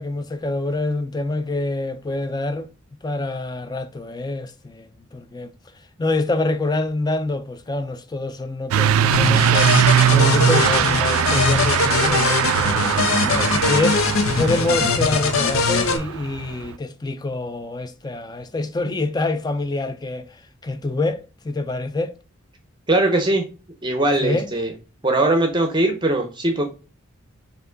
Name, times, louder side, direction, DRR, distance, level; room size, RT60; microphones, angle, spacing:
voice 1, 0.0-2.7 3.0-5.5 6.0-9.7 10.1-22.1 24.2-24.5, left 2 dB, 20° left, 0.4 m, -26 dB
Truck / Accelerating revving vroom, 8.7-16.7, right 9 dB, 90° right, 0.3 m, -21 dB
sound 1, 9.1-16.0, left 4 dB, 80° left, 0.7 m, -21 dB
voice 2, 22.9-23.4 23.8-24.7 25.0-26.6, right 2 dB, 20° right, 0.6 m, -20 dB
4.6 x 2.6 x 3.8 m
head